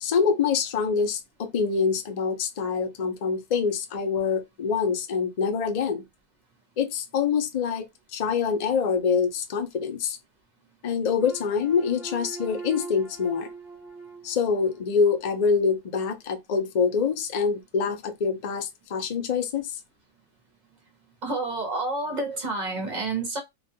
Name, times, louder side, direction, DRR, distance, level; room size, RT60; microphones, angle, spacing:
voice 1, 0.0-6.0 6.8-7.9 8.1-10.2 10.8-13.5 14.2-19.7, left 6 dB, 80° left, 0.3 m, -25 dB
sound 1, 11.2-15.5, right 4 dB, 5° right, 0.4 m, -42 dB
voice 2, 21.2-23.4, right 2 dB, 45° right, 0.6 m, -29 dB
2.4 x 2.2 x 2.6 m
omnidirectional pair, 1.4 m